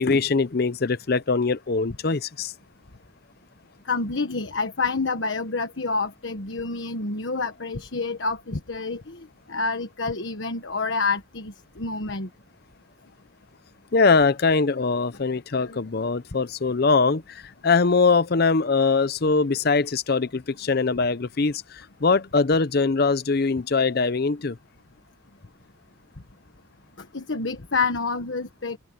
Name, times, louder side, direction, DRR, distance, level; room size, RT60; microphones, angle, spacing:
voice 1, 0.0-2.5 13.9-24.6, left 4 dB, 50° left, 0.6 m, -22 dB
voice 2, 3.9-9.2 9.5-12.3 15.6-15.8 27.1-28.8, left 4 dB, 65° left, 1.4 m, -28 dB
head